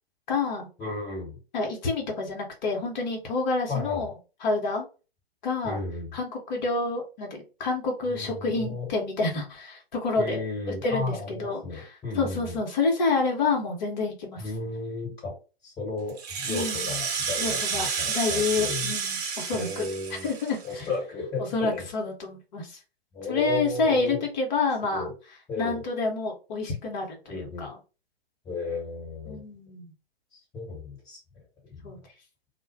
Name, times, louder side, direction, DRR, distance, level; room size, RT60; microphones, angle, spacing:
voice 1, 0.3-0.7 1.5-4.1 4.4-4.9 5.4-5.8 6.1-10.4 10.8-11.9 12.2-14.4 16.5-16.9 17.4-19.9 20.2-20.6 21.4-22.8 23.3-25.1 25.6-27.7 29.3-29.9 31.8-32.0, left 3 dB, 45° left, 1 dB, 1.1 m, -28 dB
voice 2, 0.8-1.4 3.7-4.0 5.6-6.1 8.1-8.9 10.2-12.6 14.4-15.3 15.6-18.9 19.5-20.3 20.6-21.9 23.1-24.3 24.8-25.1 25.5-25.8 27.3-27.7 28.5-29.4 30.3-31.2 31.7-31.9, left 3 dB, 15° left, -5 dB, 1.6 m, -34 dB
Rattle (instrument), 16.1-20.9, right 6 dB, 40° right, 0.8 m, -30 dB
2.4 x 2.2 x 3.4 m, 0.32 s
figure-of-eight pair, 115°, 31 cm